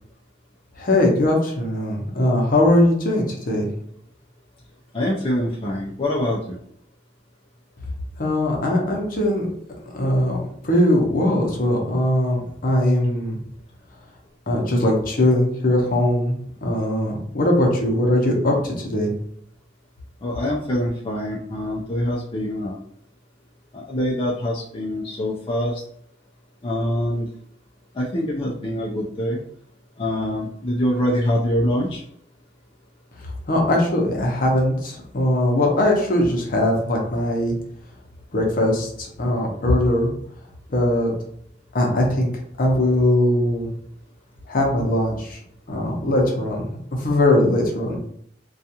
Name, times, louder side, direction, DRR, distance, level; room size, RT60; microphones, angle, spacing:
voice 1, 0.8-3.7 8.2-9.5 9.9-10.4 10.6-13.4 14.5-16.3 16.6-19.1 33.5-37.5 38.3-40.1 40.7-41.1 41.7-42.3 42.6-43.7 44.5-45.4 45.7-46.7 47.0-48.0, left 1 dB, 50° left, 0 dB, 0.7 m, -20 dB
voice 2, 4.9-6.6 20.2-22.8 23.7-25.8 26.6-27.3 27.9-29.4 30.0-32.0, left 1 dB, 30° left, -4 dB, 0.4 m, -24 dB
2.4 x 2.3 x 2.8 m, 0.67 s
head